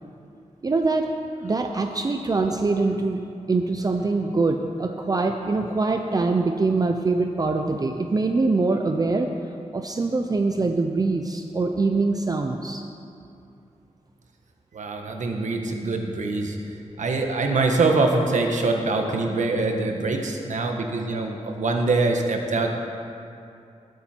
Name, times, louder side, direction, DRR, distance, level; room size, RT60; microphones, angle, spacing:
voice 1, 0.6-1.1 1.4-3.2 3.5-9.3 9.7-12.8, right 3 dB, 30° right, 4 dB, 0.6 m, -23 dB
voice 2, 14.7-16.6 17.0-22.7, right 3 dB, 80° right, 2 dB, 1.4 m, -24 dB
20.0 x 8.2 x 4.5 m, 2.6 s
wide cardioid pair, 155°, 12 cm